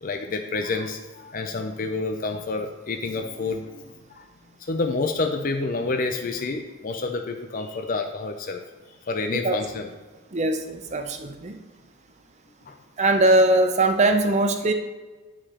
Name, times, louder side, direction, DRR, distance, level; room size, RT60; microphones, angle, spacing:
voice 1, 0.0-4.3 4.6-8.6 9.1-9.9 12.7-12.8, left 3 dB, 40° left, 5 dB, 0.4 m, -29 dB
voice 2, 10.3-11.6 13.0-14.7, right 2 dB, 30° right, 6 dB, 0.5 m, -21 dB
10.5 x 4.9 x 2.9 m, 1.3 s
head